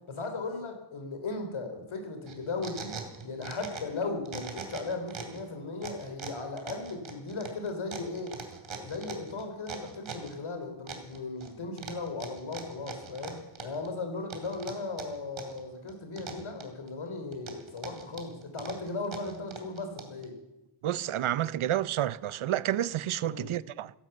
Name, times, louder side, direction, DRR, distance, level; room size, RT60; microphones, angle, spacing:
voice 1, 0.1-3.0 3.2-8.4 8.8-20.3 23.3-23.5, left 3 dB, 80° left, 3.6 m, -37 dB
sound 1, 2.3-4.0 4.3-5.4 5.8-10.4 10.9-11.5 11.8-13.9 14.3-15.6 15.9-16.9 17.3-20.3, right 5 dB, 75° right, 2.9 m, -41 dB
voice 2, 20.8-23.9, right 12 dB, 90° right, 0.6 m, -30 dB
16.0 x 11.5 x 7.9 m
wide cardioid pair, 170°, 48 cm